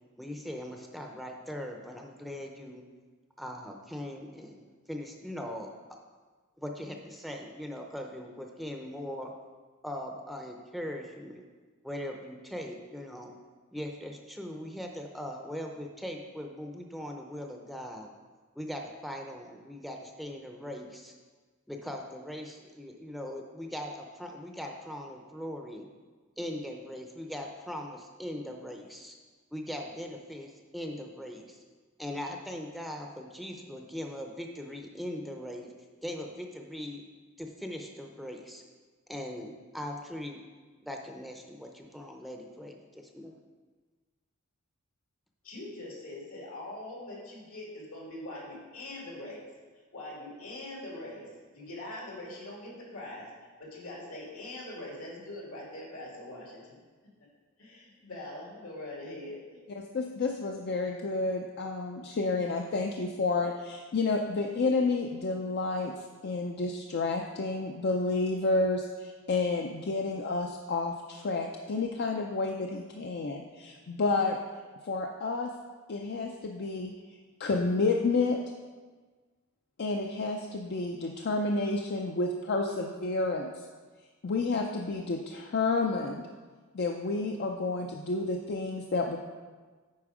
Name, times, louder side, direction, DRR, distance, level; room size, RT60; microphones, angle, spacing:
voice 1, 0.2-2.8 3.4-5.7 6.6-9.3 9.8-11.4 11.8-13.3 13.7-18.1 18.6-21.1 21.7-25.9 26.4-29.1 29.5-31.6 32.0-35.7 36.0-37.0 37.4-38.6 39.1-40.4 40.8-43.3, left 1 dB, ahead, 2 dB, 0.6 m, -40 dB
voice 2, 45.4-49.5 49.9-51.3 51.5-53.3 53.6-56.8 57.6-59.6, left 1 dB, 80° left, -3 dB, 2.6 m, -42 dB
voice 3, 59.7-74.4 74.8-75.5 75.9-76.9 77.4-78.4 79.8-83.6 84.2-86.2 86.7-89.2, left 3 dB, 50° left, 2 dB, 0.5 m, -30 dB
8.5 x 5.1 x 4.9 m, 1.4 s
head